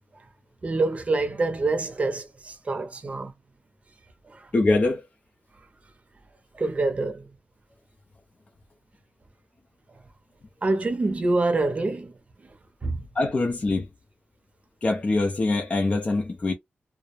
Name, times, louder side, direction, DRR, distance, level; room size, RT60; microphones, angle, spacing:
voice 1, 0.6-3.3 4.3-4.5 6.5-7.3 10.6-12.1 12.8-13.0, right 2 dB, 35° right, 0.6 m, -26 dB
voice 2, 4.5-5.0 13.2-13.9 14.8-16.5, left 2 dB, 35° left, 0.4 m, -23 dB
2.3 x 2.0 x 2.9 m
wide cardioid pair, 155°, 4 cm